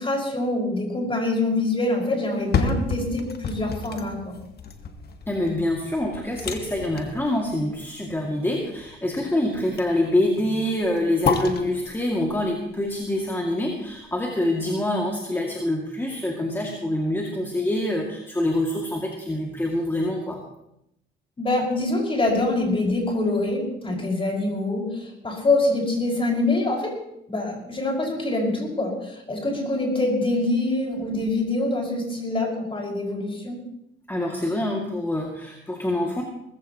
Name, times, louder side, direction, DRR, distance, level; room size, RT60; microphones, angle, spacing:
voice 1, 0.0-4.4 21.4-26.9 27.3-33.6, left 2 dB, 25° left, -1 dB, 5.5 m, -25 dB
sound 1, 2.2-14.3 14.7-14.8, left 5 dB, 55° left, 1.6 m, -32 dB
voice 2, 5.3-20.4 34.1-36.2, left 1 dB, 10° left, -1 dB, 2.3 m, -25 dB
19.5 x 15.5 x 3.0 m, 0.82 s
cardioid pair, 90°, 20 cm